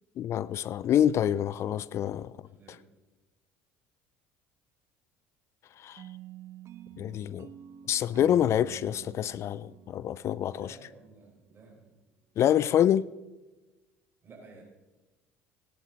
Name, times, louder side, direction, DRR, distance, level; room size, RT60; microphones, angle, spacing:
voice 1, 0.2-2.3 5.8-6.0 7.0-7.5 7.9-10.7 12.4-13.1, left 10 dB, 50° left, 0.4 m, -26 dB
voice 2, 2.4-2.8 10.5-11.9 14.2-14.6, right 3 dB, 35° right, 4.6 m, -53 dB
sound 1, 6.0-11.1, right 10 dB, 50° right, 0.8 m, -48 dB
16.5 x 10.0 x 4.0 m
hypercardioid pair, 75°, 6 cm